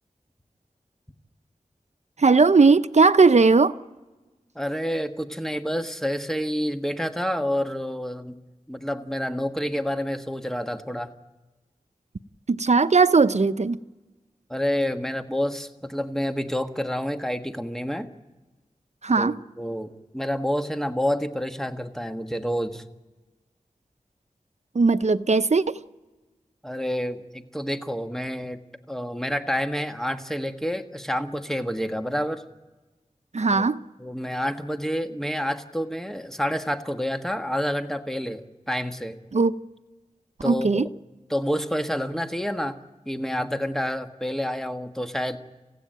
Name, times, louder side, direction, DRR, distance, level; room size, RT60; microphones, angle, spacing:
voice 1, 2.2-3.8 12.5-13.8 19.0-19.4 24.7-25.8 33.3-33.8 39.3-39.5 40.4-40.9, right 4 dB, 60° right, 0.7 m, -18 dB
voice 2, 4.5-8.4 8.7-11.1 14.5-18.1 19.2-19.3 19.6-22.8 26.6-28.6 28.9-32.4 33.5-33.6 34.0-39.2 40.4-40.9 41.3-42.8 43.1-45.4, equal, 5° left, 1.5 m, -28 dB
27.0 x 15.5 x 9.2 m
wide cardioid pair, 45°, 13 cm